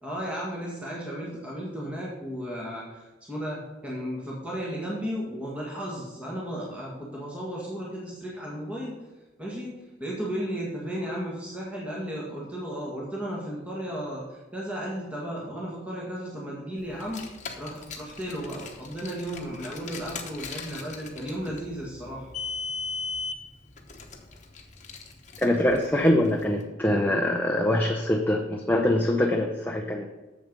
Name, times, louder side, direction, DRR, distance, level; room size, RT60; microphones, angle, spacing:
voice 1, 0.0-9.0 9.4-17.2 17.6-22.3, equal, 5° right, -5 dB, 1.7 m, -34 dB
Car, 16.9-26.4, left 4 dB, 40° left, 1.1 m, -38 dB
voice 2, 25.4-30.1, left 1 dB, 10° left, 0 dB, 0.7 m, -24 dB
7.4 x 7.0 x 5.3 m, 1.1 s
head